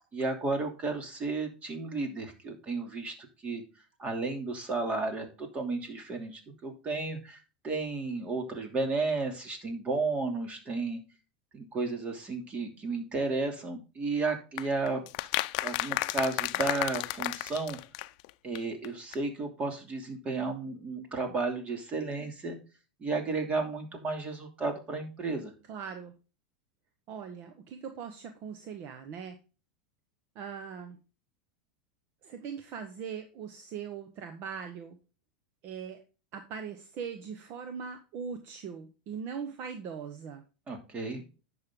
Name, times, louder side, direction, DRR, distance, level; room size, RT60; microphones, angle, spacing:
voice 1, 0.1-3.1 3.4-3.6 4.0-7.4 7.6-11.0 11.5-15.0 15.6-17.8 18.4-22.6 23.0-25.5 40.7-41.2, right 3 dB, 30° right, 4 dB, 2.8 m, -33 dB
sound 1, 14.6-18.3 18.5-18.6 18.8-18.9 19.1-19.2, left 19 dB, 60° left, 0.6 m, -32 dB
voice 2, 25.7-26.1 27.1-29.4 30.3-31.0 32.2-35.0 35.6-36.0 36.3-40.4, right 6 dB, 50° right, 7 dB, 1.3 m, -40 dB
10.5 x 6.7 x 3.8 m, 0.33 s
supercardioid pair, 120°, 5 cm